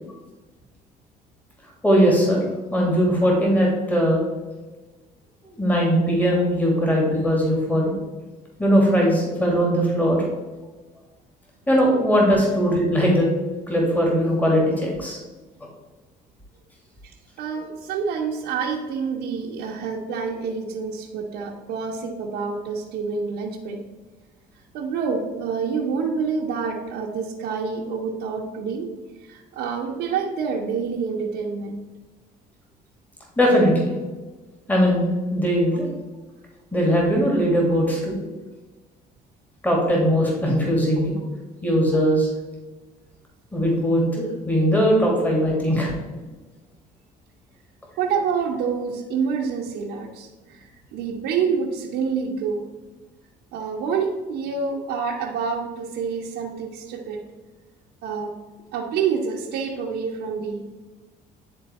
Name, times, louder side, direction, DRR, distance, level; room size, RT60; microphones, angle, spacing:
voice 1, 1.8-2.4 2.7-4.2 5.6-7.9 8.6-10.2 11.7-13.3 13.7-15.2 33.4-33.9 34.7-35.1 35.3-35.9 36.7-38.2 39.6-41.1 41.6-42.3 43.5-45.9, equal, 10° left, -2 dB, 2.1 m, -20 dB
voice 2, 17.4-23.8 24.5-28.9 29.2-31.8 48.0-52.7 53.5-57.2 58.0-58.3 58.7-60.8, right 5 dB, 80° right, -3 dB, 1.0 m, -27 dB
9.8 x 4.0 x 4.2 m, 1.2 s
cardioid pair, 110°, 17 cm